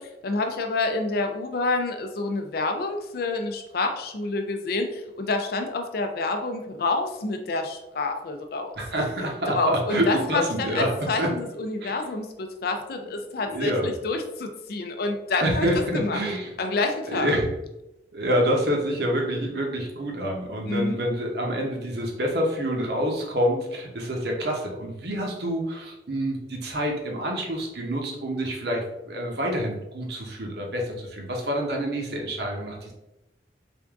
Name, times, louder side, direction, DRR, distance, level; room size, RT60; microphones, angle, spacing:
voice 1, 0.2-8.7 9.5-15.7 15.9-16.2 16.6-17.3 20.7-21.0, left 3 dB, 55° left, 5 dB, 0.5 m, -28 dB
voice 2, 8.8-11.3 11.8-12.0 13.0-13.1 13.4-13.9 15.4-16.5 17.0-17.5 18.1-32.9, equal, 60° right, 0 dB, 0.8 m, -27 dB
3.5 x 2.6 x 3.5 m, 0.92 s
head